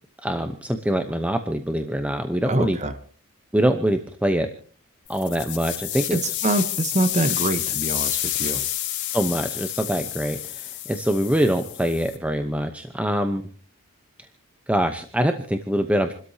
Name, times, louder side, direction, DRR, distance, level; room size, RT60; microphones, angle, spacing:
voice 1, 0.2-2.8 3.5-4.5 5.1-6.4 9.1-13.5 14.2-14.3 14.7-16.1, right 1 dB, 5° right, 6 dB, 0.8 m, -24 dB
voice 2, 2.5-2.9 6.1-8.7, right 2 dB, 30° right, 9 dB, 1.0 m, -25 dB
sound 1, 5.1-12.2, left 13 dB, 55° left, 3.3 m, -29 dB
28.5 x 13.0 x 2.8 m, 0.42 s
head